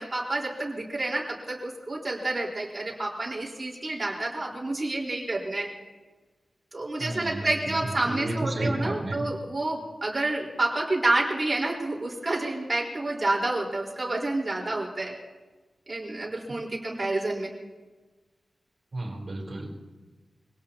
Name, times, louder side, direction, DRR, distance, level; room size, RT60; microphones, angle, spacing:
voice 1, 0.0-5.7 6.7-15.2 15.9-17.5, right 2 dB, 30° right, -2 dB, 4.2 m, -29 dB
voice 2, 7.0-9.2 18.9-19.7, right 1 dB, 45° right, -4 dB, 3.9 m, -32 dB
24.5 x 18.0 x 2.9 m, 1.3 s
wide cardioid pair, 110°, 0 cm